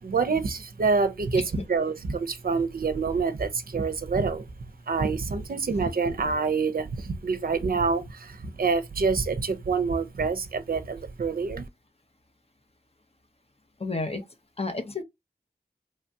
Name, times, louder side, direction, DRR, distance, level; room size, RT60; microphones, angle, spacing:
voice 1, 0.0-1.4 1.7-4.5 4.9-11.7, right 4 dB, 60° right, 0.5 m, -26 dB
voice 2, 13.8-14.2 14.6-15.0, left 3 dB, 35° left, 0.7 m, -30 dB
3.2 x 2.3 x 2.6 m
wide cardioid pair, 50°, 17 cm